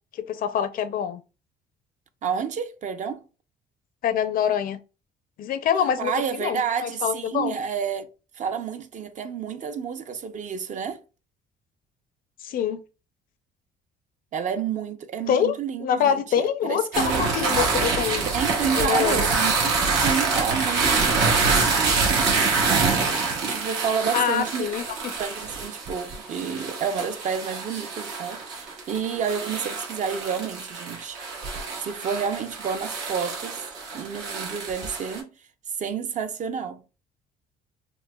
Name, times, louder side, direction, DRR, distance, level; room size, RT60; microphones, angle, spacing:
voice 1, 0.2-1.2 4.0-4.8 5.4-7.6 12.4-12.8 15.3-18.3 18.8-19.3 24.1-24.8, left 8 dB, 60° left, 0.5 m, -25 dB
voice 2, 2.2-3.2 6.0-8.1 8.3-11.0 14.3-17.3 18.3-22.9 23.4-24.7 25.2-31.2 31.8-33.6 33.9-35.3 35.8-36.8, right 7 dB, 45° right, 0.6 m, -30 dB
sound 1, 16.9-35.2, right 4 dB, 80° right, 1.4 m, -26 dB
5.9 x 2.1 x 2.3 m
cardioid pair, 110°, 17 cm